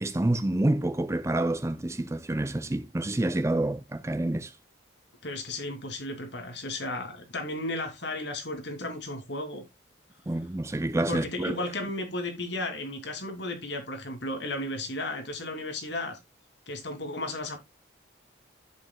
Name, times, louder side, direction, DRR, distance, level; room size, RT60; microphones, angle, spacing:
voice 1, 0.0-4.5 10.3-11.6, right 1 dB, 15° right, 0.4 m, -28 dB
voice 2, 5.2-9.6 11.1-16.2 16.7-17.6, left 2 dB, 60° left, 2.5 m, -34 dB
10.5 x 8.3 x 2.2 m
head